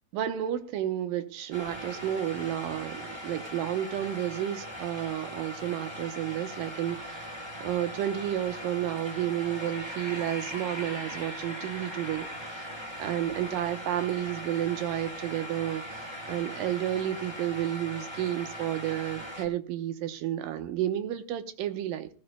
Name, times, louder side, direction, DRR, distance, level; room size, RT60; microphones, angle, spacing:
voice 1, 0.1-12.6 13.0-22.1, right 12 dB, 85° right, 2.7 m, -31 dB
sound 1, 1.5-19.4, equal, 25° right, 0.6 m, -40 dB
19.0 x 13.0 x 2.3 m
omnidirectional pair, 4.0 m